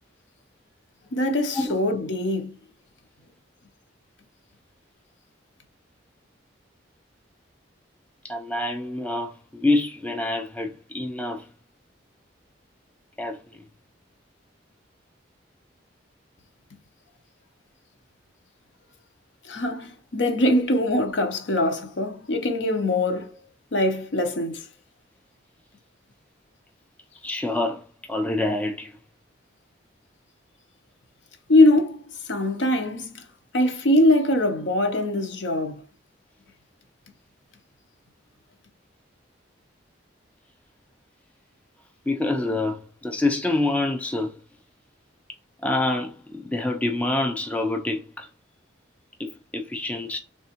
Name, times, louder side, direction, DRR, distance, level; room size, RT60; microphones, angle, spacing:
voice 1, 1.1-2.5 19.5-23.4 23.7-24.6 31.5-32.0 32.3-33.1 33.5-35.8, left 1 dB, 70° left, 0.7 m, -22 dB
voice 2, 8.2-11.4 13.2-13.6 27.2-27.8 28.1-28.9 42.1-44.3 45.6-48.3 49.2-50.2, left 2 dB, 5° left, 0.3 m, -26 dB
3.4 x 3.4 x 2.9 m
head